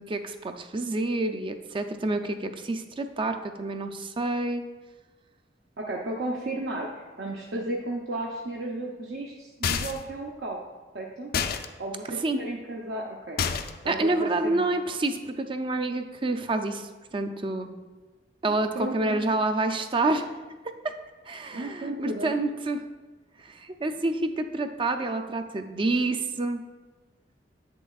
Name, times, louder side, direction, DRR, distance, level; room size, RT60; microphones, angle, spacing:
voice 1, 0.0-4.7 12.1-12.4 13.9-17.7 18.4-20.3 20.6-20.9 21.3-22.8 23.4-26.6, right 2 dB, 30° right, 7 dB, 0.4 m, -28 dB
voice 2, 5.8-10.6 10.9-11.3 11.8-13.6 13.8-14.7 18.5-19.3 21.5-22.3, right 1 dB, 70° right, -2 dB, 0.7 m, -34 dB
sound 1, 9.6-10.1 11.3-11.7 13.4-13.9, left 6 dB, 55° left, 0.4 m, -28 dB
8.2 x 6.7 x 2.4 m, 1.3 s
head